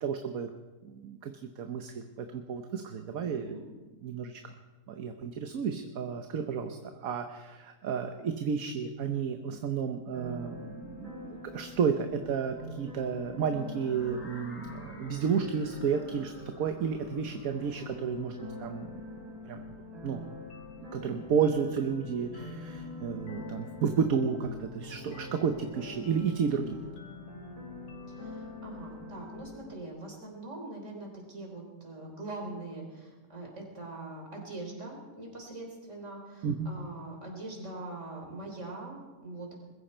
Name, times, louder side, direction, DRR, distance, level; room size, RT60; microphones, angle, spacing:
voice 1, 0.0-0.5 0.8-3.6 4.0-4.4 4.9-18.9 19.2-19.6 20.0-20.2 20.9-26.8 36.4-36.7, right 6 dB, 65° right, 6 dB, 1.3 m, -32 dB
voice 2, 3.2-3.6 28.1-39.5, right 2 dB, 50° right, 1 dB, 4.1 m, -42 dB
sound 1, 10.1-29.7, left 1 dB, 85° right, 3.9 m, -45 dB
sound 2, 13.7-19.6, left 2 dB, 55° left, 2.7 m, -55 dB
sound 3, 20.5-29.9, left 9 dB, 70° left, 1.4 m, -51 dB
21.5 x 15.0 x 4.4 m, 1.3 s
omnidirectional pair, 1.7 m